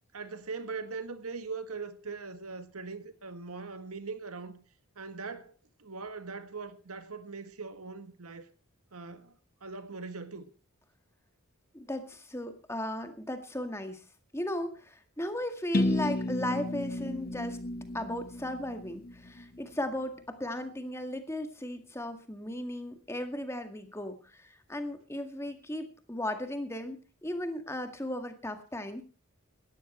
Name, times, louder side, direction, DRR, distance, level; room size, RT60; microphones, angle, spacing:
voice 1, 0.1-4.6 5.0-5.5 5.8-8.5 8.9-9.3 9.6-10.5, right 4 dB, 90° right, 1.7 m, -41 dB
voice 2, 11.7-14.0 14.3-17.6 17.9-29.0, left 1 dB, 10° left, 1.9 m, -36 dB
sound 1, 15.7-19.6, left 1 dB, 40° left, 1.1 m, -32 dB
18.0 x 13.5 x 4.4 m
head